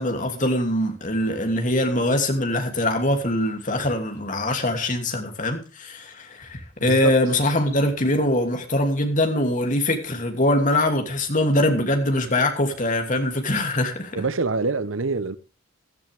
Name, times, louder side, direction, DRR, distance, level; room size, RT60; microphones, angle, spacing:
voice 1, 0.0-14.2, left 1 dB, 40° left, 2.8 m, -23 dB
voice 2, 6.8-7.1 14.1-15.4, right 3 dB, 80° right, 1.0 m, -25 dB
15.0 x 13.5 x 3.5 m
head